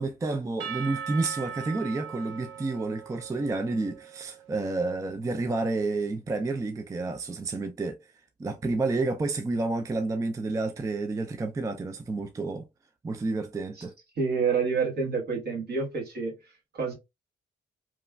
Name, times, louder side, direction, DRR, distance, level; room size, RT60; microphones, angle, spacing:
voice 1, 0.0-8.0 8.4-12.7 13.0-13.9, right 3 dB, 15° right, 0.3 m, -30 dB
Percussion / Church bell, 0.6-4.5, right 8 dB, 70° right, 0.7 m, -40 dB
voice 2, 14.1-16.9, right 5 dB, 55° right, 1.3 m, -28 dB
3.0 x 2.3 x 2.2 m
cardioid pair, 90°, 20 cm